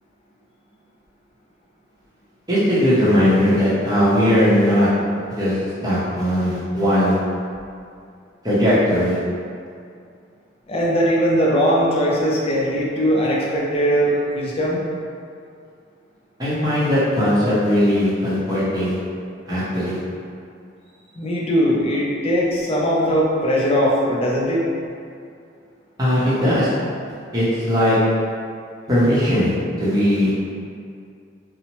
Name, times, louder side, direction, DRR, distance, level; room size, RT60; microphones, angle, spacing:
voice 1, 2.5-4.9 5.3-5.6 5.8-7.2 8.4-9.2 16.4-19.0 19.5-20.0 26.0-26.7 27.3-28.0 28.9-29.5 29.8-30.3, equal, 20° right, -10 dB, 0.7 m, -18 dB
voice 2, 10.7-14.8 21.2-24.6, equal, 30° left, -5 dB, 0.4 m, -20 dB
2.7 x 2.0 x 2.9 m, 2.3 s
head